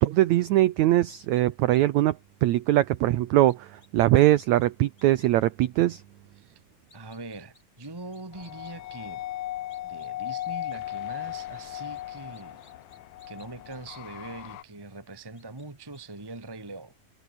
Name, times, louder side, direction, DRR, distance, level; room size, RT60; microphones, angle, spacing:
voice 1, 0.0-6.0, right 15 dB, 75° right, 1.7 m, -22 dB
sound 1, 1.1-1.4 1.7-1.8 2.2-2.3 3.5-3.9 4.4-4.7 5.0-5.3 5.6-5.7 6.7-9.3 9.7-10.8 11.0-13.8 14.4-14.5 15.4-15.7 15.9-16.0, left 2 dB, 20° left, 6.6 m, -59 dB
voice 2, 6.9-9.2 9.8-12.6 13.3-16.9, right 2 dB, 20° right, 0.6 m, -42 dB
sound 2, 8.3-14.6, left 14 dB, 80° left, 2.9 m, -37 dB
omnidirectional pair, 4.1 m